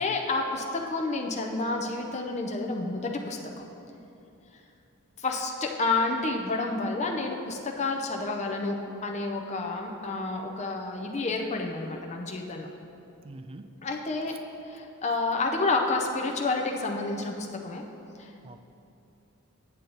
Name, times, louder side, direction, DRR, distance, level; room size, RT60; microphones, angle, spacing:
voice 1, 0.0-3.6 5.2-12.7 13.8-14.3 14.6-17.8 18.2-18.3, left 3 dB, 30° left, 2 dB, 0.5 m, -29 dB
voice 2, 13.2-13.6 14.2-14.4 18.4-18.6, right 2 dB, 25° right, 9 dB, 0.3 m, -45 dB
7.8 x 7.1 x 3.9 m, 2.7 s
head